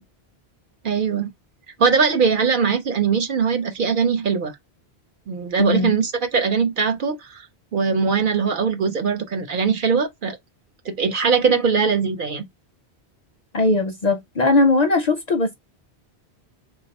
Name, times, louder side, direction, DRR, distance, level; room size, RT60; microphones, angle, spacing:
voice 1, 0.8-1.3 1.8-4.5 5.3-7.4 7.7-10.4 10.9-12.5, right 5 dB, 60° right, 0.7 m, -21 dB
voice 2, 5.6-5.9 13.5-15.6, left 2 dB, 50° left, 0.5 m, -19 dB
3.2 x 2.3 x 4.0 m
omnidirectional pair, 1.1 m